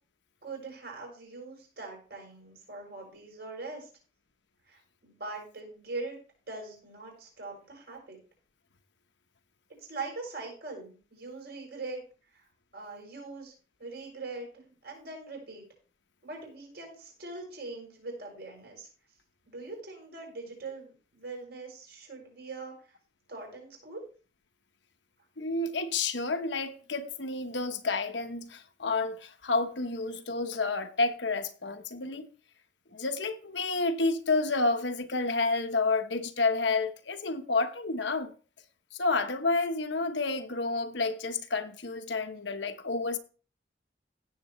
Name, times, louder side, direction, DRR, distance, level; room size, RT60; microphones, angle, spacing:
voice 1, 0.4-3.9 4.7-6.2 6.5-8.2 9.8-12.0 12.3-12.4 12.7-13.5 13.8-15.6 16.2-18.9 19.4-22.7 23.3-24.0, right 3 dB, 60° right, 6.7 m, -42 dB
voice 2, 25.4-32.3 32.9-38.3 38.9-43.2, left 3 dB, 80° left, 1.0 m, -30 dB
16.5 x 7.6 x 3.1 m
head